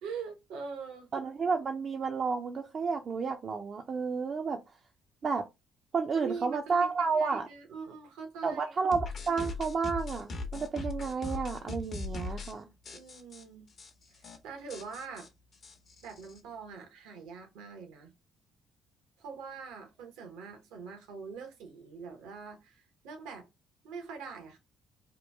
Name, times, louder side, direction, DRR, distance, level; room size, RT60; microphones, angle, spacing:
voice 1, 0.0-1.1 6.2-8.7 12.9-13.7 14.1-15.3 16.0-18.1 19.2-23.5 23.8-24.6, right 5 dB, 80° right, 0.9 m, -43 dB
voice 2, 1.1-4.6 5.2-5.4 5.9-7.5 8.4-12.7, right 5 dB, 50° right, 0.5 m, -31 dB
sound 1, 8.9-12.5 12.9-13.4 13.8-13.9 14.1-14.4 14.7-16.4, left 3 dB, 55° left, 0.8 m, -39 dB
3.0 x 2.2 x 3.3 m
hypercardioid pair, 60°, 0 cm